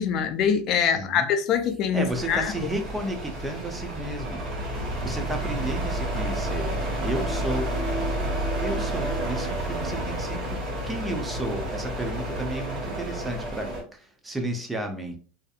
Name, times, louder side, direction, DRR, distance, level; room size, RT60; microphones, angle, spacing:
voice 1, 0.0-2.7, left 7 dB, 45° left, 0.4 m, -24 dB
voice 2, 0.8-1.3 1.9-4.4 5.0-6.7 7.0-7.7 8.6-15.2, right 1 dB, 10° right, 0.5 m, -33 dB
sound 1, 1.4-9.5, left 2 dB, 50° right, 1.2 m, -42 dB
sound 2, 2.1-13.8, right 1 dB, 30° right, 1.4 m, -30 dB
2.6 x 2.5 x 2.4 m
supercardioid pair, 135°, 0 cm